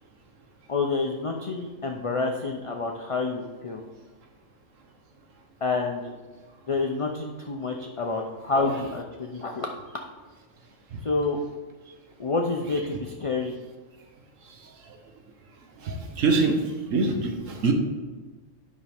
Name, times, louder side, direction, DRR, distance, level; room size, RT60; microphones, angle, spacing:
voice 1, 0.7-3.8 5.6-6.1 6.7-9.8 11.0-11.4 12.2-13.5, left 3 dB, 40° left, 2 dB, 0.5 m, -28 dB
voice 2, 15.9-16.6 16.9-17.7, right 4 dB, 75° right, 4 dB, 1.3 m, -24 dB
9.8 x 6.0 x 3.5 m, 1.3 s
omnidirectional pair, 1.3 m